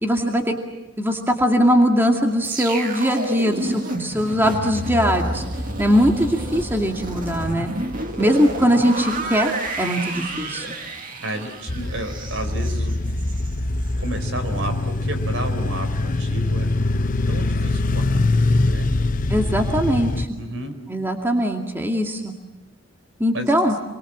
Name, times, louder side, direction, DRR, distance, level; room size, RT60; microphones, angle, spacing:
voice 1, 0.0-0.6 1.0-5.4 5.8-7.7 8.2-10.7 19.3-20.3 20.9-22.3 23.2-23.7, equal, 10° right, 2 dB, 2.3 m, -20 dB
sound 1, 2.4-13.5 13.9-14.1, right 1 dB, 40° right, 2.3 m, -30 dB
voice 2, 11.2-12.9 14.0-16.7 17.3-18.1 18.6-18.9 20.4-20.7 23.3-23.5, right 1 dB, 70° right, 7 dB, 4.4 m, -31 dB
sound 2, 11.7-20.3, left 2 dB, 40° left, 0.9 m, -23 dB
29.0 x 23.0 x 7.5 m, 1.1 s
head